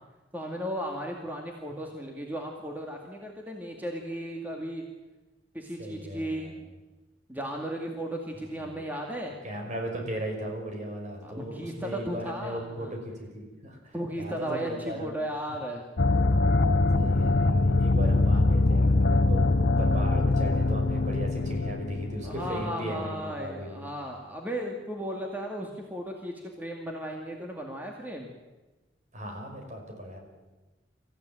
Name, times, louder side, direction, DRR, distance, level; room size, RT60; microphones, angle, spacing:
voice 1, 0.3-4.8 5.5-6.5 7.3-9.3 11.2-12.9 13.9-15.9 22.2-28.3, equal, 10° right, 1 dB, 2.2 m, -35 dB
voice 2, 5.8-6.5 8.6-8.9 9.4-15.1 17.0-23.8 29.1-30.2, equal, 45° right, 2 dB, 5.4 m, -37 dB
sound 1, 16.0-22.7, left 2 dB, 65° left, 0.9 m, -23 dB
25.0 x 15.0 x 9.2 m, 1.2 s
head